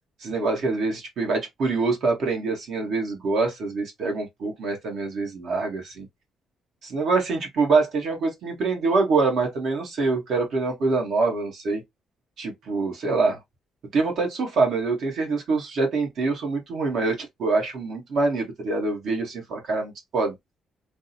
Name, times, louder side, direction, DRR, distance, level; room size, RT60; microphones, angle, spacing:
voice 1, 0.2-6.1 6.9-11.8 12.4-13.4 13.9-20.3, right 3 dB, 70° right, 1.5 m, -25 dB
3.4 x 2.3 x 2.8 m
cardioid pair, 90°, 0 cm